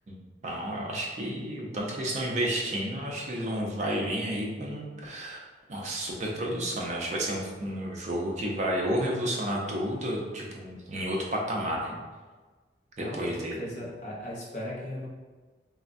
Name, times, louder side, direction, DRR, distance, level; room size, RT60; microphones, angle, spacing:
voice 1, 0.4-5.4 5.7-12.0 13.0-13.6, right 1 dB, 40° right, -1 dB, 0.4 m, -31 dB
voice 2, 13.0-15.1, left 1 dB, 40° left, -5 dB, 0.6 m, -37 dB
3.3 x 2.0 x 2.5 m, 1.3 s
head